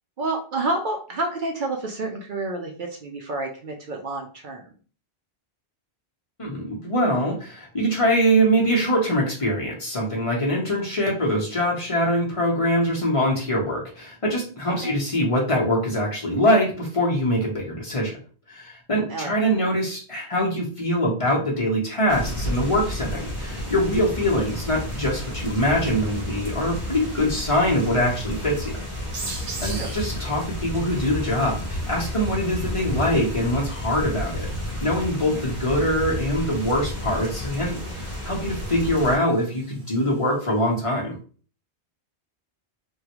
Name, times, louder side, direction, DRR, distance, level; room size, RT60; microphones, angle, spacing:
voice 1, 0.2-4.7 14.8-14.9 19.1-19.3 29.7-29.9 35.2-35.4, right 2 dB, 60° right, 2 dB, 0.6 m, -29 dB
voice 2, 6.4-18.1 18.5-28.7 29.2-29.3 29.6-34.5 34.8-41.2, equal, 35° left, -3 dB, 0.8 m, -23 dB
sound 1, 22.1-39.2, equal, 15° right, 0.9 m, -31 dB
sound 2, 29.1-40.5, right 3 dB, 90° right, 1.2 m, -43 dB
3.6 x 2.1 x 2.9 m, 0.40 s
omnidirectional pair, 1.1 m